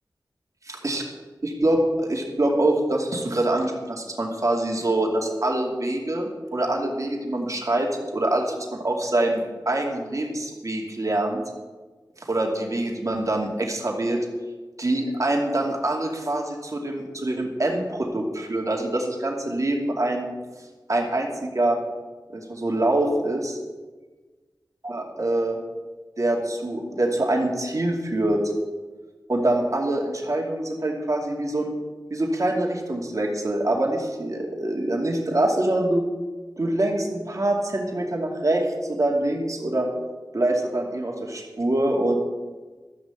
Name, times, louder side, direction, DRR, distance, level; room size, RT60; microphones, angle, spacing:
voice 1, 1.4-11.4 12.3-14.2 14.8-20.3 20.9-21.8 22.3-23.6 24.8-25.6 26.2-28.4 29.3-31.7 32.1-36.0 36.6-39.9 40.3-42.2, right 1 dB, 50° right, 0 dB, 2.5 m, -25 dB
13.0 x 6.5 x 8.0 m, 1.3 s
wide cardioid pair, 65°, 7 cm